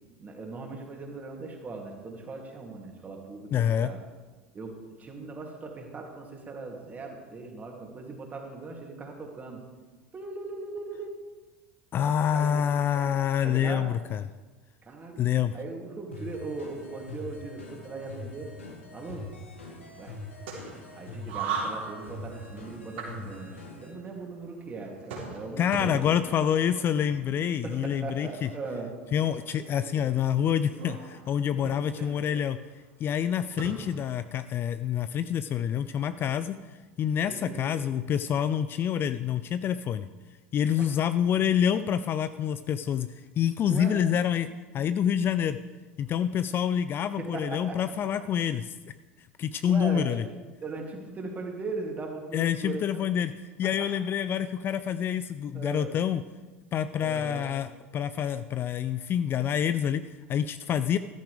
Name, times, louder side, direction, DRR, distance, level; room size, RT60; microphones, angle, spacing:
voice 1, 0.2-4.0 4.5-9.6 10.1-11.1 12.0-12.6 12.9-13.1 13.4-13.9 14.8-15.2 15.5-18.5 18.9-19.2 20.0-20.2 20.9-26.3 27.6-28.9 31.6-31.7 32.0-32.3 37.3-37.8 40.8-40.9 43.7-44.0 47.2-47.8 49.7-50.3 50.6-53.0 53.6-53.7 55.5-55.9 57.0-57.5, right 3 dB, 25° right, 1 dB, 2.7 m, -39 dB
voice 2, 3.5-3.9 11.9-14.2 15.2-15.6 25.6-28.5 29.1-32.6 33.0-36.6 37.0-40.1 40.5-44.5 44.7-45.6 46.0-48.7 49.4-50.2 52.3-56.2 56.7-61.0, left 9 dB, 35° left, 12 dB, 0.4 m, -27 dB
sound 1, 16.1-23.9, left 2 dB, 80° left, 2.3 m, -43 dB
sound 2, 19.7-34.2, right 4 dB, 65° right, 3.5 m, -41 dB
14.0 x 13.5 x 3.4 m, 1.3 s
figure-of-eight pair, 75°, 7 cm